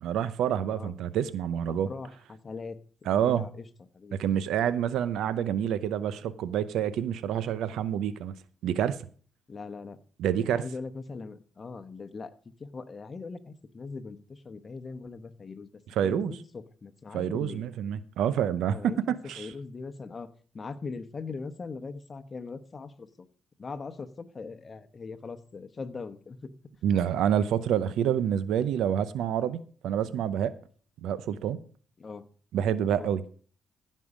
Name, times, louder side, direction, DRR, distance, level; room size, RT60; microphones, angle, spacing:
voice 1, 0.0-1.9 3.1-3.4 4.1-8.3 8.6-9.0 10.2-10.6 16.0-16.3 17.1-18.9 19.3-19.5 26.8-30.5 31.0-31.6 32.5-33.2, right 9 dB, 80° right, 0.6 m, -27 dB
voice 2, 1.7-3.7 3.9-4.2 9.5-10.0 10.4-12.3 12.6-17.7 18.6-19.0 19.4-20.3 20.5-23.3 23.6-26.5 32.0-32.3 32.9-33.1, left 4 dB, 35° left, 1.1 m, -40 dB
15.5 x 5.5 x 5.0 m
cardioid pair, 90°, 0 cm